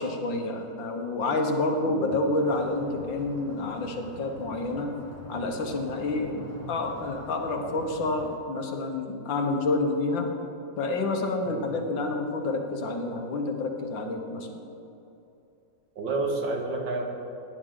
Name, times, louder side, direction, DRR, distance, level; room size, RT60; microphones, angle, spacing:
voice 1, 0.0-4.9 5.3-10.3 10.8-14.6, left 2 dB, 80° left, 3 dB, 1.9 m, -29 dB
sound 1, 2.5-8.4, left 1 dB, 10° left, 0.8 m, -45 dB
voice 2, 16.0-17.0, right 3 dB, 80° right, 1 dB, 2.3 m, -30 dB
17.5 x 9.9 x 3.8 m, 2.8 s
omnidirectional pair, 2.0 m